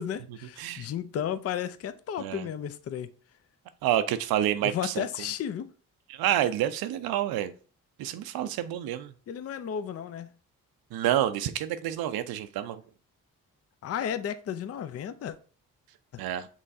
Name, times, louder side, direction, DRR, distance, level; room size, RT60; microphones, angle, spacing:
voice 1, 0.0-3.1 4.6-5.7 9.3-10.3 13.8-15.4 16.1-16.2, left 9 dB, 40° left, 0.5 m, -33 dB
voice 2, 3.8-5.1 6.1-7.5 8.0-9.1 10.9-12.8 16.2-16.5, right 12 dB, 75° right, 0.5 m, -28 dB
5.5 x 3.1 x 2.6 m
supercardioid pair, 55°, 37 cm